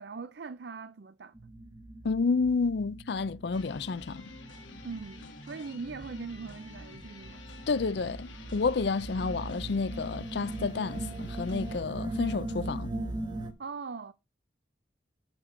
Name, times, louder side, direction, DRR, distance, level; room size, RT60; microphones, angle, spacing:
voice 1, 0.0-1.3 4.8-7.4 13.6-14.1, right 4 dB, 60° right, 0.5 m, -41 dB
sound 1, 1.3-13.5, right 2 dB, 25° right, 1.2 m, -40 dB
voice 2, 2.0-4.2 7.7-12.9, left 4 dB, 60° left, 0.5 m, -30 dB
sound 2, 3.5-11.8, left 3 dB, 85° left, 1.8 m, -49 dB
6.6 x 6.0 x 5.8 m
head